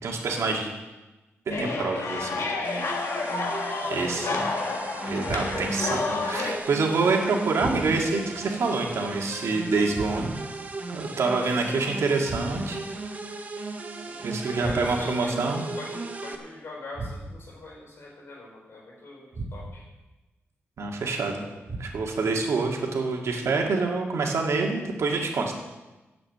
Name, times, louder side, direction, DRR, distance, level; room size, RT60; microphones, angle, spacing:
voice 1, 0.0-0.7 1.5-3.0 3.9-4.4 5.1-10.4 10.9-12.8 14.2-15.7 20.8-21.4 21.8-25.6, right 3 dB, 85° right, 1 dB, 2.0 m, -27 dB
sound 1, 1.5-6.6, left 3 dB, 85° left, 1.6 m, -30 dB
sound 2, 2.6-16.4, right 2 dB, 35° right, 1.0 m, -36 dB
voice 2, 2.9-3.4 3.8-4.3 14.0-19.8, left 2 dB, 60° left, -3 dB, 4.8 m, -44 dB
sound 3, 5.2-5.9 7.6-8.2 9.9-10.6 12.3-12.9 14.6-15.2 16.9-17.6 19.3-20.0 21.7-22.3, right 2 dB, 55° right, 1.9 m, -37 dB
10.0 x 7.7 x 8.0 m, 1.1 s
wide cardioid pair, 165°, 5 cm